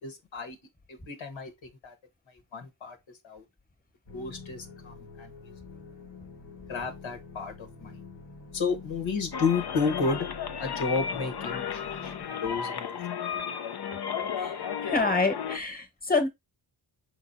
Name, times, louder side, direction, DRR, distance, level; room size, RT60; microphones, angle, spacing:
voice 1, 0.0-0.6 0.9-1.9 2.3-3.4 4.1-5.5 6.7-8.0 8.5-10.3 10.6-13.0 13.6-13.8, left 4 dB, 70° left, 1.4 m, -32 dB
sound 1, 4.1-12.3, left 4 dB, 90° left, 1.6 m, -47 dB
sound 2, 9.3-15.6, left 7 dB, 50° left, 0.8 m, -34 dB
voice 2, 14.8-16.3, left 3 dB, 20° left, 1.4 m, -27 dB
5.0 x 3.8 x 2.7 m
cardioid pair, 60°, 48 cm